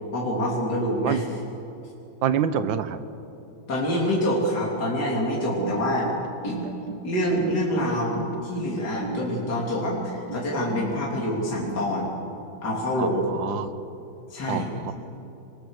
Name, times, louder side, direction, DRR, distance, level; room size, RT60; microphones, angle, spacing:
voice 1, 0.1-1.3 3.7-6.1 6.4-6.6 7.0-12.1 12.6-13.3 14.3-14.9, equal, 55° left, -4 dB, 3.7 m, -26 dB
voice 2, 2.2-3.0 13.0-13.7 14.5-14.9, right 8 dB, 75° right, 12 dB, 1.7 m, -26 dB
sound 1, 5.3-12.2, right 3 dB, 60° right, 2.1 m, -36 dB
25.5 x 22.0 x 6.6 m, 2.9 s
omnidirectional pair, 2.1 m